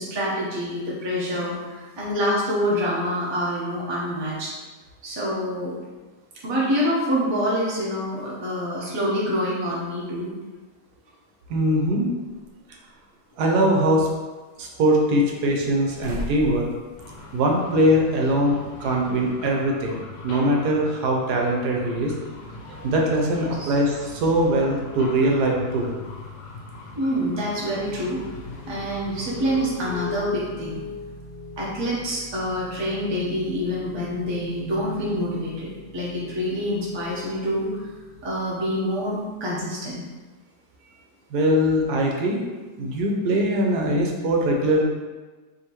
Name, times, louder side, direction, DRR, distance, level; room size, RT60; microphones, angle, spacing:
voice 1, 0.0-4.5 5.0-5.7 6.4-10.3 23.2-23.3 23.6-23.8 27.0-28.2 28.7-30.8 31.6-37.8 38.2-40.0, equal, 20° right, -6 dB, 0.7 m, -26 dB
voice 2, 11.5-12.1 13.4-14.1 14.6-16.7 17.3-22.1 22.8-25.9 41.3-42.4 42.8-44.8, right 1 dB, 75° right, 0 dB, 1.2 m, -21 dB
sound 1, 12.3-12.4 13.3-14.2 15.1-17.4 17.7-17.8 19.4-19.5, equal, 45° right, 0.4 m, -38 dB
sound 2, 17.0-30.1, left 2 dB, 60° left, 0.9 m, -41 dB
sound 3, 27.7-39.1, left 1 dB, 80° left, 0.4 m, -39 dB
4.8 x 2.9 x 2.9 m, 1.3 s
omnidirectional pair, 1.7 m